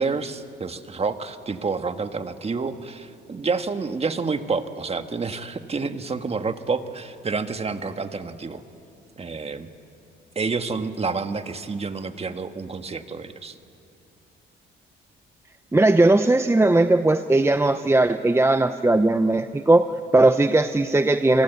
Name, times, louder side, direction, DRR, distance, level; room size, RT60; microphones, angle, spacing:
voice 1, 0.0-8.6 9.2-9.7 10.3-13.6, right 4 dB, 30° right, 8 dB, 1.5 m, -29 dB
voice 2, 15.7-21.4, right 2 dB, 15° right, 9 dB, 0.7 m, -18 dB
29.0 x 22.5 x 8.3 m, 2.5 s
cardioid pair, 90°, 20 cm